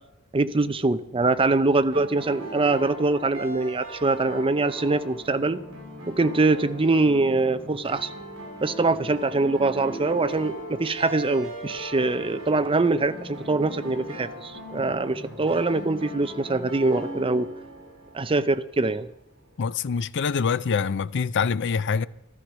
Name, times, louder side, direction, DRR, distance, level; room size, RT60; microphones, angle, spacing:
voice 1, 0.3-5.6 6.1-8.1 8.6-17.5 18.1-19.1, right 3 dB, 25° right, 0.6 m, -23 dB
sound 1, 1.9-18.8, right 1 dB, 60° right, 6.3 m, -38 dB
voice 2, 19.6-22.1, left 6 dB, 55° left, 0.5 m, -25 dB
13.5 x 13.0 x 6.2 m
head